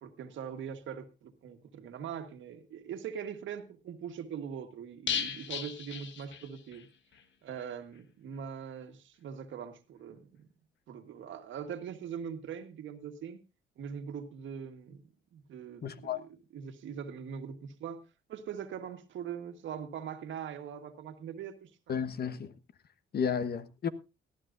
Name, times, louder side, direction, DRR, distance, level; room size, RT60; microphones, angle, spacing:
voice 1, 0.0-6.9 7.4-10.5 10.9-13.4 13.8-15.0 15.3-22.0, right 8 dB, 75° right, 1.5 m, -42 dB
sound 1, 5.1-6.9 7.1-7.2 7.6-7.7, left 8 dB, 70° left, 1.4 m, -36 dB
voice 2, 15.8-16.2 21.9-22.5 23.1-23.9, left 7 dB, 55° left, 1.1 m, -32 dB
18.5 x 13.0 x 2.6 m
cardioid pair, 90°, 20 cm